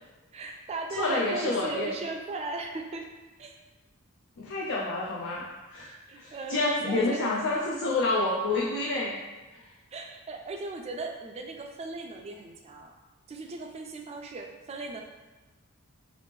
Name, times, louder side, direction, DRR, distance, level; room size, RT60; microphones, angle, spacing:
voice 1, 0.3-3.1 3.4-3.6 6.1-7.2 9.9-12.9 13.3-15.0, right 3 dB, 30° right, 3 dB, 0.3 m, -37 dB
voice 2, 1.0-1.9 4.4-5.4 5.7-9.2, left 2 dB, 60° left, -3 dB, 0.4 m, -28 dB
3.2 x 2.4 x 3.4 m, 1.2 s
head